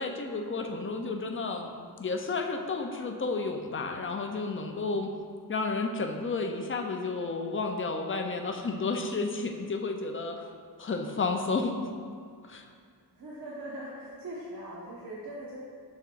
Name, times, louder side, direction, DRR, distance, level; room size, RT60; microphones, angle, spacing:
voice 1, 0.0-1.7 2.0-5.1 5.5-10.4 10.8-11.8 12.5-12.6, left 3 dB, 30° left, 4 dB, 0.5 m, -31 dB
voice 2, 13.1-15.6, right 1 dB, 60° right, -6 dB, 1.0 m, -41 dB
6.7 x 6.0 x 2.5 m, 2.1 s
wide cardioid pair, 105°, 40 cm